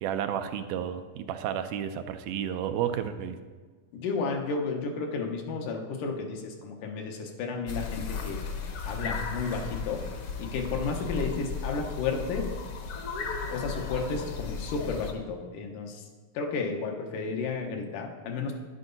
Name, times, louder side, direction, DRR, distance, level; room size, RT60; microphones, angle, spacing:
voice 1, 0.0-3.4, right 9 dB, 90° right, 9 dB, 2.2 m, -31 dB
voice 2, 3.9-8.4 8.8-10.0 10.4-12.5 13.5-16.0 16.3-18.6, left 4 dB, 80° left, 2 dB, 2.7 m, -32 dB
sound 1, 7.7-15.1, left 5 dB, 60° left, 1.6 m, -35 dB
10.5 x 10.5 x 4.0 m, 1.5 s
omnidirectional pair, 3.6 m